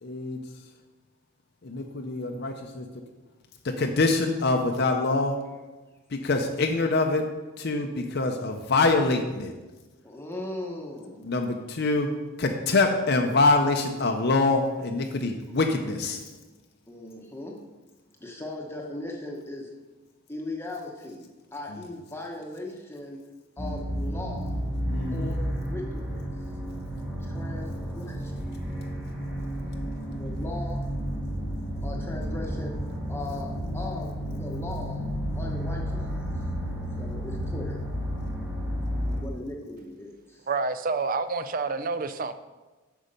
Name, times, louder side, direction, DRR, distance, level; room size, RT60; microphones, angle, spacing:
voice 1, 0.0-0.4 1.6-2.9 3.6-5.4 6.1-7.2 7.6-9.5 11.2-12.1 12.4-16.2 21.7-21.8 24.9-25.4, left 3 dB, 50° left, 3 dB, 0.6 m, -25 dB
voice 2, 10.0-11.2 16.9-17.6 18.2-19.7 20.3-23.2 23.6-24.5 25.1-26.5 27.2-28.6 30.1-30.8 31.8-32.8 33.1-35.0 35.3-36.3 37.0-37.8 39.2-40.5, left 2 dB, 10° left, -1 dB, 0.9 m, -38 dB
sound 1, 23.6-39.2, equal, 15° right, 1.6 m, -32 dB
voice 3, 40.5-42.3, right 4 dB, 40° right, 12 dB, 0.4 m, -28 dB
8.2 x 6.4 x 5.2 m, 1.2 s
head